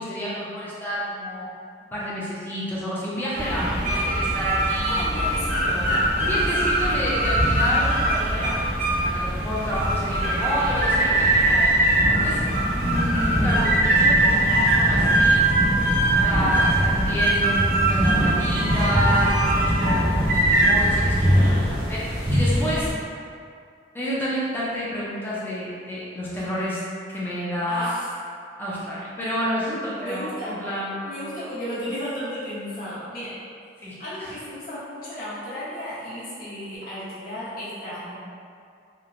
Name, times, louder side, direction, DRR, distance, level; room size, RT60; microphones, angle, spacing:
voice 1, 0.0-1.5 1.9-5.0 6.2-8.6 9.0-11.8 12.2-12.4 12.7-15.4 16.1-22.9 23.9-26.8 27.1-27.9 28.6-31.1 33.8-34.3, equal, 10° left, -8 dB, 0.4 m, -29 dB
sound 1, 3.4-22.9, right 1 dB, 45° right, 0.5 m, -21 dB
voice 2, 4.8-6.3 6.8-7.0 27.7-28.1 30.0-30.5 31.0-33.3 34.0-38.2, equal, 50° left, -10 dB, 0.9 m, -34 dB
2.9 x 2.1 x 2.5 m, 2.3 s
head